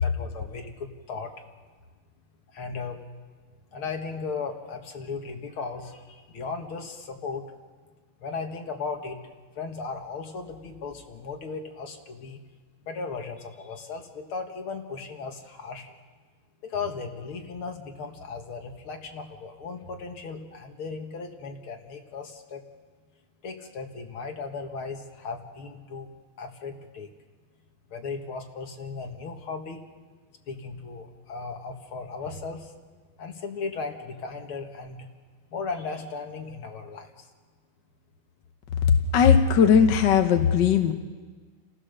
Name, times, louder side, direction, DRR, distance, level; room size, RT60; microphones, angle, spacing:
voice 1, 0.0-1.3 2.5-3.0 3.7-7.4 8.2-9.2 9.6-12.4 12.8-15.9 16.6-22.6 23.4-26.1 26.4-27.1 27.9-29.8 30.5-32.7 33.2-35.1 35.5-37.3, left 4 dB, 75° left, 4 dB, 2.6 m, -36 dB
voice 2, 39.1-40.9, left 7 dB, 60° left, 6 dB, 1.6 m, -18 dB
30.0 x 15.5 x 6.7 m, 1.5 s
omnidirectional pair, 2.4 m